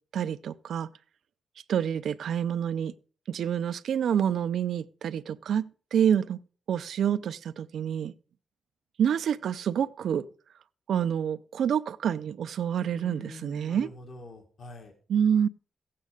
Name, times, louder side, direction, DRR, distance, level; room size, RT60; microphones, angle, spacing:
voice 1, 0.1-0.9 1.7-2.9 3.3-6.4 6.7-8.1 9.0-10.3 10.9-13.9 15.1-15.5, right 8 dB, 75° right, 0.5 m, -27 dB
voice 2, 12.9-14.9, left 2 dB, 55° left, 2.0 m, -45 dB
16.0 x 8.5 x 5.0 m
wide cardioid pair, 135°, 0 cm